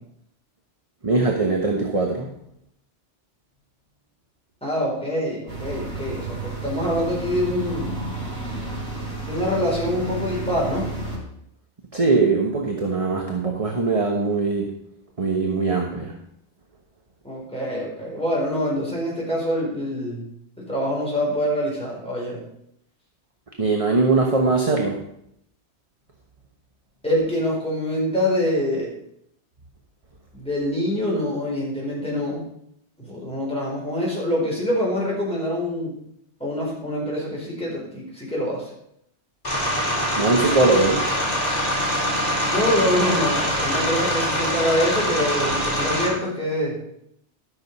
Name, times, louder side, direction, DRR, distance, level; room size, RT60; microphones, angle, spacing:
voice 1, 1.0-2.3 11.9-14.7 15.2-16.1 23.6-25.0 40.2-41.1, right 3 dB, 30° right, 1 dB, 1.2 m, -21 dB
voice 2, 4.6-8.0 9.3-10.9 17.2-20.3 20.6-22.4 27.0-28.9 30.3-32.4 33.0-36.0 36.4-38.7 42.5-46.8, left 1 dB, 5° left, -5 dB, 4.4 m, -25 dB
sound 1, 5.5-11.2, right 2 dB, 60° right, 3.8 m, -31 dB
sound 2, 39.4-46.1, equal, 35° left, 3.9 m, -24 dB
12.5 x 6.6 x 5.4 m, 0.74 s
omnidirectional pair, 1.2 m